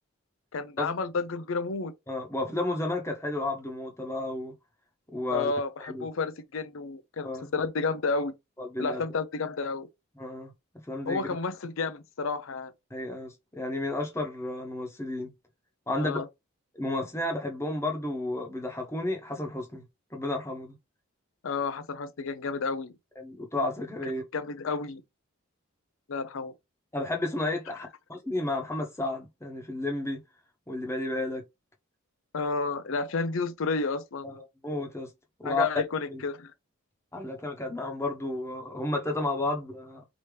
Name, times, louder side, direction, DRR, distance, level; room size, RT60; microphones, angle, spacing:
voice 1, 0.5-1.9 5.3-8.3 8.8-9.9 11.1-12.7 16.0-16.3 21.4-22.9 24.3-25.0 26.1-26.5 27.8-27.9 32.3-34.3 35.4-36.5, left 4 dB, 70° left, 0.5 m, -31 dB
voice 2, 2.1-4.5 5.1-5.5 5.8-6.1 7.2-7.5 8.6-9.0 10.2-10.5 10.9-11.3 12.9-15.3 15.9-16.2 16.7-19.8 20.1-20.7 23.2-24.2 26.9-30.2 30.7-31.4 34.2-35.1 35.4-35.7 36.1-36.2 37.1-40.0, left 2 dB, 15° left, 0.9 m, -32 dB
4.9 x 2.8 x 3.3 m
head